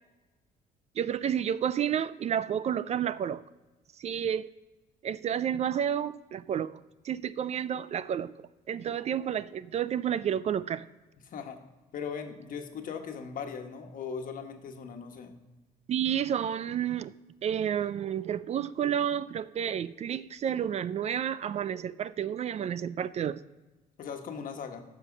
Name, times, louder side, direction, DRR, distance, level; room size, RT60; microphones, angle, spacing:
voice 1, 1.0-3.4 4.0-4.5 5.0-6.8 7.0-8.4 8.7-10.9 15.9-17.1 17.4-23.4, right 9 dB, 40° right, 17 dB, 0.3 m, -30 dB
voice 2, 11.2-11.6 11.9-15.4 24.0-24.8, left 6 dB, 55° left, 5 dB, 1.3 m, -39 dB
14.5 x 5.8 x 6.0 m, 1.2 s
cardioid pair, 110°, 17 cm